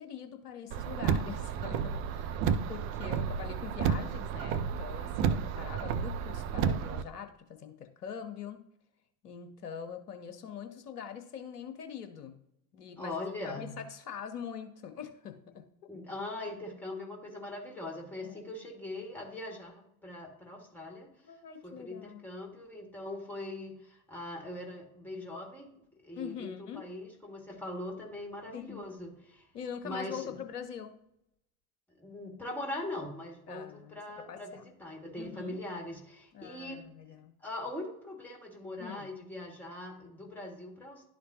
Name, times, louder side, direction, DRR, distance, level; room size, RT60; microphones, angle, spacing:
voice 1, 0.0-8.6 9.2-12.4 12.7-13.1 13.4-15.6 18.2-18.4 21.2-22.2 26.2-26.9 28.5-28.9 29.5-30.9 33.5-34.6 35.2-35.6 36.3-37.3 38.8-39.1, left 8 dB, 70° left, 7 dB, 1.1 m, -43 dB
Car, 0.7-7.0, right 7 dB, 30° right, 0.4 m, -31 dB
voice 2, 13.0-13.8 15.9-21.1 21.6-29.5 29.8-30.4 32.0-36.9 37.4-41.1, left 1 dB, 5° left, 0 dB, 1.9 m, -41 dB
11.0 x 4.3 x 2.8 m, 0.79 s
figure-of-eight pair, 75°, 48 cm